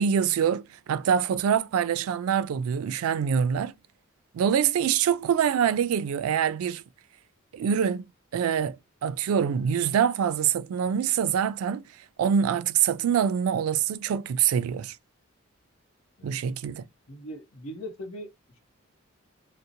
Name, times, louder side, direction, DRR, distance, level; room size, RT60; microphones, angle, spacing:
voice 1, 0.0-3.7 4.3-6.8 7.5-8.1 8.3-8.8 9.0-11.8 12.2-14.9 16.2-16.8, right 8 dB, 90° right, 0.3 m, -25 dB
voice 2, 17.1-18.3, equal, 70° left, 0.7 m, -39 dB
2.7 x 2.0 x 2.5 m
head